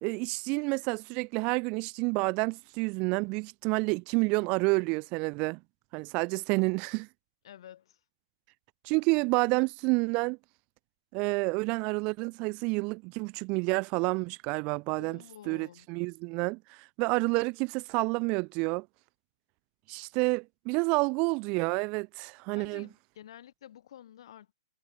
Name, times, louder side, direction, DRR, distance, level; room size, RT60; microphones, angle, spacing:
voice 1, 0.0-5.6 5.9-7.1 8.8-10.4 11.1-18.9 19.9-22.9, right 29 dB, 30° right, 0.7 m, -29 dB
voice 2, 7.4-8.0 15.0-15.9 22.6-24.5, left 11 dB, 55° left, 3.2 m, -50 dB
figure-of-eight pair, 115°, 3 cm